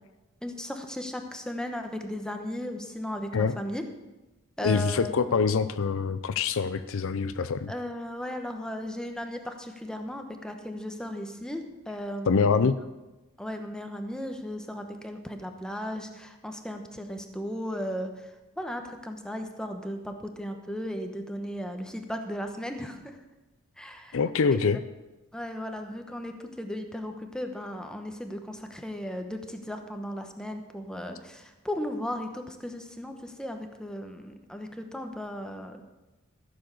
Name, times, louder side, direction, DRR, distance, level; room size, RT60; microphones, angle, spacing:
voice 1, 0.4-3.8 4.6-5.1 7.7-12.7 13.4-18.1 18.6-23.2 23.8-24.2 25.3-35.8, equal, 5° left, 5 dB, 1.0 m, -36 dB
voice 2, 4.6-7.7 12.3-12.8 24.1-24.8, left 5 dB, 65° left, 12 dB, 0.5 m, -25 dB
14.0 x 7.2 x 6.6 m, 1.1 s
head